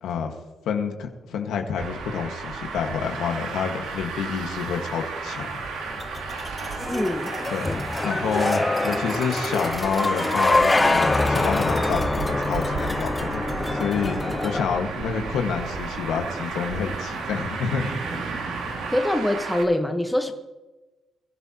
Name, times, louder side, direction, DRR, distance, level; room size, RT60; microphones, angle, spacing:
voice 1, 0.0-0.3 0.6-5.5 7.5-7.7 8.0-18.0, left 6 dB, 80° left, 4 dB, 1.7 m, -28 dB
Traffic noise roadway noise, 1.8-19.6, right 5 dB, 90° right, 2.2 m, -34 dB
sound 1, 5.4-14.7, left 2 dB, 20° left, 0.7 m, -25 dB
voice 2, 6.9-7.3 18.9-20.3, left 1 dB, 5° left, 5 dB, 1.3 m, -24 dB
sound 2, 10.0-19.0, right 2 dB, 60° right, 2.7 m, -39 dB
22.0 x 12.5 x 3.0 m, 1.1 s
cardioid pair, 90°, 0 cm